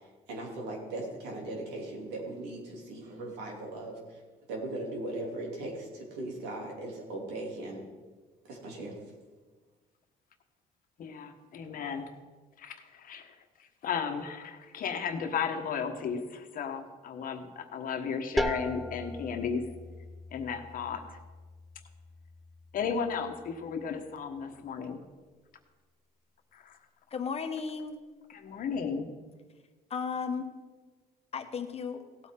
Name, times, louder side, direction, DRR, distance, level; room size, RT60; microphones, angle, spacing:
voice 1, 0.3-4.2 4.5-7.8 8.5-8.9, right 2 dB, 90° right, 0 dB, 3.0 m, -38 dB
voice 2, 11.0-12.1 12.6-13.3 13.6-19.6 20.3-21.2 22.7-25.0 26.5-26.8 28.3-29.1, left 6 dB, 55° left, 6 dB, 1.3 m, -34 dB
sound 1, 18.4-23.9, left 1 dB, ahead, 0.6 m, -39 dB
voice 3, 27.1-28.0 29.9-30.5 31.3-32.0, left 5 dB, 35° left, 7 dB, 1.1 m, -34 dB
17.0 x 8.5 x 3.8 m, 1.4 s
cardioid pair, 110°, 17 cm